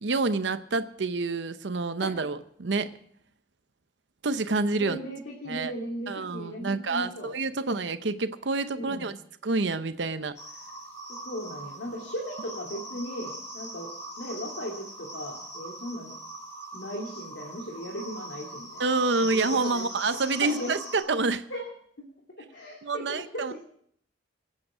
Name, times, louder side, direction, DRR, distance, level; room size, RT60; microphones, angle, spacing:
voice 1, 0.0-2.9 4.2-5.0 5.5-5.7 6.1-9.1 9.4-10.4 18.8-21.4 22.8-23.6, right 3 dB, 75° right, 11 dB, 0.8 m, -28 dB
voice 2, 4.8-7.3 8.8-9.1 11.2-13.9 14.2-16.1 16.7-18.9 19.2-19.9 20.4-20.9 21.5-21.6 22.4-23.6, equal, 80° left, -1 dB, 2.6 m, -37 dB
sound 1, 10.3-21.0, right 1 dB, 35° left, 6.3 m, -41 dB
25.0 x 8.6 x 5.0 m, 0.66 s
head